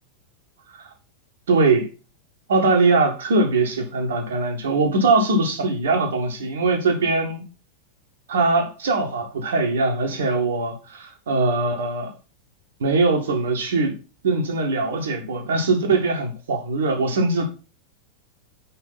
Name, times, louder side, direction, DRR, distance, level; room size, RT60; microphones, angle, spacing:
voice 1, 1.5-1.9 2.5-7.4 8.3-12.1 12.8-14.0 14.2-17.4, right 3 dB, 60° right, 1.7 m, -21 dB
5.2 x 4.4 x 5.7 m
figure-of-eight pair, 90°, 0 cm